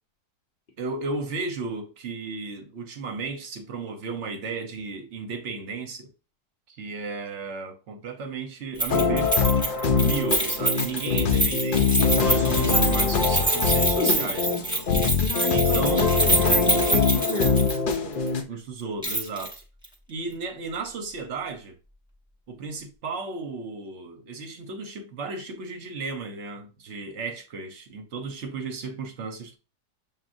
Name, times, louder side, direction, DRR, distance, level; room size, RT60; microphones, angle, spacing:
voice 1, 0.8-6.1 6.7-9.4 9.9-14.9 15.5-16.2 18.5-19.5 20.1-21.7 22.5-29.6, right 4 dB, 50° right, 1.0 m, -34 dB
Keys jangling, 8.8-17.9 18.3-18.4 19.0-19.5 19.8-19.9, right 2 dB, 5° right, 0.8 m, -26 dB
sound 1, 8.9-18.4, left 5 dB, 85° left, 0.4 m, -23 dB
voice 2, 14.0-14.3 15.2-18.3, left 3 dB, 45° left, 0.8 m, -32 dB
7.3 x 2.6 x 2.6 m
omnidirectional pair, 1.7 m